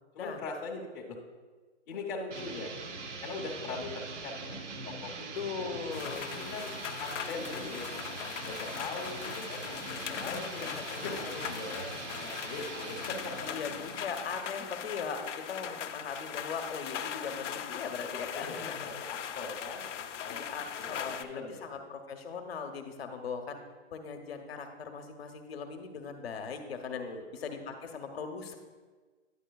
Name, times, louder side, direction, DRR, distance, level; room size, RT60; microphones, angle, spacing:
voice 1, 0.1-1.2 1.9-2.7 3.2-4.6 4.8-5.7 6.3-13.5 18.3-21.8 26.9-27.6, left 3 dB, 15° left, -5 dB, 0.7 m, -41 dB
sound 1, 2.3-14.8, right 3 dB, 80° right, 0.9 m, -42 dB
voice 2, 5.4-6.3 10.1-10.8 13.4-18.9 20.3-23.6 23.9-27.1 27.3-28.5, left 5 dB, 60° left, 5 dB, 0.9 m, -39 dB
sound 2, 5.9-21.2, left 9 dB, 85° left, 0.6 m, -40 dB
9.9 x 7.6 x 2.3 m, 1.4 s
hypercardioid pair, 160°, 36 cm